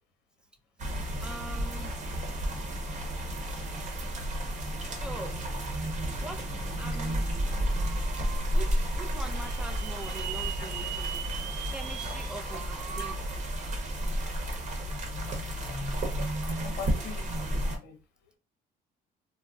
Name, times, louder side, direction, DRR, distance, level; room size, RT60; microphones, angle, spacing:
sound 1, 0.8-17.8, equal, 45° right, 0.9 m, -32 dB
voice 1, 1.2-2.0 4.8-5.4 6.2-7.6 7.8-7.9 8.5-11.2 11.7-13.3, right 2 dB, 5° right, 0.5 m, -43 dB
sound 2, 7.5-13.1, right 10 dB, 85° right, 0.4 m, -41 dB
voice 2, 16.6-18.0, left 6 dB, 75° left, 0.7 m, -41 dB
2.4 x 2.0 x 3.5 m
cardioid pair, 110°, 17 cm